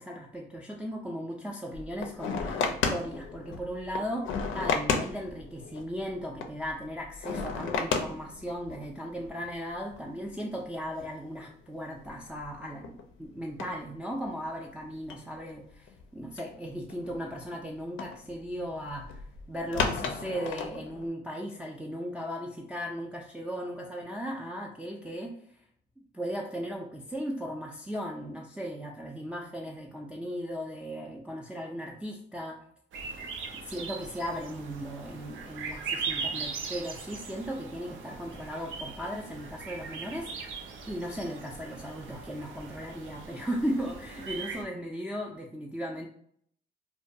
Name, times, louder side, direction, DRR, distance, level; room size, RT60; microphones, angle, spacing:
voice 1, 0.0-12.9 13.2-25.3 26.1-32.6 33.2-33.3 33.5-40.6 40.9-46.1, equal, 5° right, -2 dB, 0.3 m, -37 dB
sound 1, 1.7-8.9 9.2-9.5 9.9-10.0 10.6-11.0 11.5-11.6 12.1-12.5 12.8-13.2 13.6-14.3 15.1-16.0 16.4-17.2 18.0-21.1, left 5 dB, 80° left, 0.4 m, -33 dB
sound 2, 32.9-44.6, right 5 dB, 75° right, 0.5 m, -40 dB
2.4 x 2.2 x 2.6 m, 0.64 s
cardioid pair, 90°, 20 cm